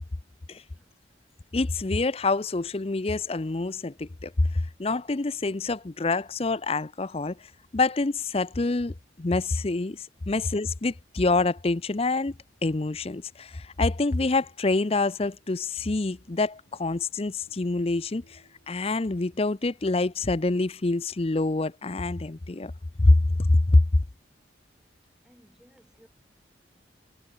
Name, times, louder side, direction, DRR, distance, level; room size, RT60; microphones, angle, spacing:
voice 1, 0.7-1.0 10.4-10.6 25.0-26.1, equal, 5° right, 5.7 m, -59 dB
voice 2, 1.5-7.4 7.7-12.3 12.6-18.4 18.7-22.7 23.0-23.8, left 2 dB, 30° left, 0.6 m, -26 dB
sound 1, 14.0-19.3, left 1 dB, 70° left, 5.5 m, -65 dB
head